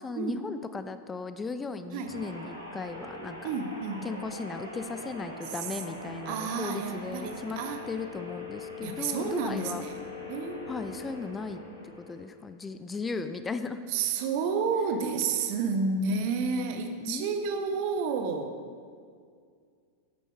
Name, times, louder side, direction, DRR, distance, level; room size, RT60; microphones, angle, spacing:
voice 1, 0.0-3.5 4.0-7.6 7.9-9.8 10.7-11.6 11.9-13.8 17.0-18.1, left 4 dB, 15° left, 10 dB, 0.4 m, -37 dB
sound 1, 2.0-12.4, left 2 dB, 90° right, 1.5 m, -42 dB
voice 2, 3.4-4.3 6.3-7.8 8.8-9.9 10.3-10.8 13.9-18.6, right 5 dB, 45° right, 7 dB, 0.8 m, -30 dB
9.9 x 8.3 x 3.6 m, 2.1 s
figure-of-eight pair, 90°, 0 cm